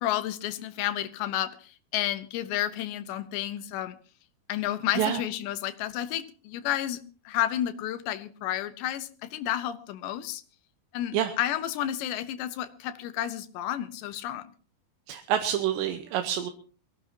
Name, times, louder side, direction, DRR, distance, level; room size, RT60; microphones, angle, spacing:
voice 1, 0.0-4.0 4.5-10.4 10.9-14.5, left 12 dB, 85° left, 12 dB, 3.1 m, -31 dB
voice 2, 15.1-16.5, right 10 dB, 85° right, 6 dB, 3.2 m, -27 dB
23.5 x 16.0 x 2.8 m, 0.39 s
omnidirectional pair, 5.0 m